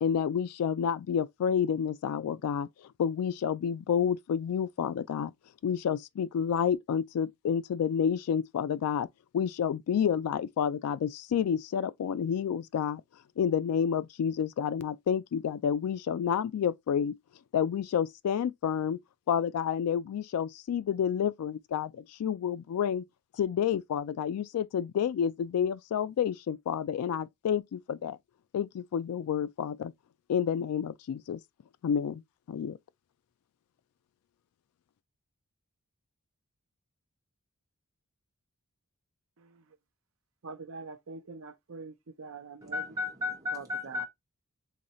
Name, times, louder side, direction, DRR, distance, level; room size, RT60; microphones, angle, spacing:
voice 1, 0.0-5.3 5.6-9.1 9.3-13.0 13.4-17.2 17.5-19.0 19.3-23.1 23.4-28.2 28.5-29.9 30.3-31.4 31.8-32.2 32.5-32.8, left 8 dB, 80° left, 0.3 m, -29 dB
voice 2, 40.4-41.9 42.2-42.8 43.5-44.0, right 4 dB, 65° right, 0.6 m, -43 dB
voice 3, 42.7-44.1, left 3 dB, 15° right, 1.3 m, -34 dB
4.0 x 3.1 x 2.9 m
head